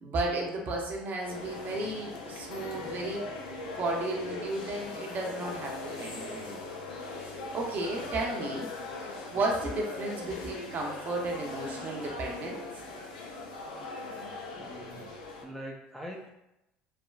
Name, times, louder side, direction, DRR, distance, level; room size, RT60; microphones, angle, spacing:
voice 1, 0.0-3.3 3.7-6.6 7.2-8.7 9.0-12.7, right 2 dB, 45° right, -1 dB, 0.7 m, -34 dB
sound 1, 1.2-15.4, left 3 dB, 90° left, 0.4 m, -40 dB
voice 2, 14.6-15.1 15.4-16.3, equal, 5° left, -1 dB, 0.5 m, -43 dB
3.3 x 2.2 x 2.4 m, 0.87 s
hypercardioid pair, 80°, 4 cm